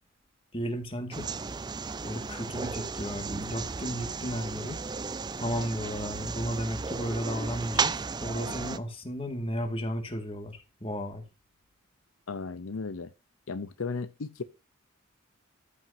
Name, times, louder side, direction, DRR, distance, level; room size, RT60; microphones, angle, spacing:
voice 1, 0.5-1.3 2.0-4.8 5.4-11.2, equal, 25° left, 2.0 m, -34 dB
sound 1, 1.1-8.8, right 4 dB, 20° right, 0.4 m, -34 dB
voice 2, 12.3-13.1 13.5-14.4, left 4 dB, 85° left, 0.7 m, -35 dB
14.0 x 6.0 x 2.7 m
head